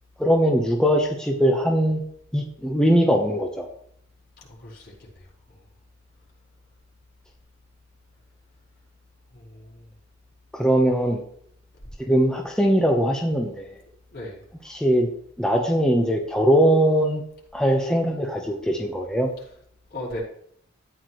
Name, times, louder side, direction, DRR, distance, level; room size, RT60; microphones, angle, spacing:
voice 1, 0.2-2.0 2.3-3.7 10.5-11.2 12.1-13.8 14.6-15.1 15.4-17.2 17.5-19.3, equal, 5° left, 0 dB, 1.1 m, -21 dB
voice 2, 4.6-5.1 9.3-9.8 14.1-14.4 19.9-20.2, left 1 dB, 55° left, -4 dB, 5.0 m, -36 dB
13.5 x 9.8 x 3.2 m, 0.66 s
head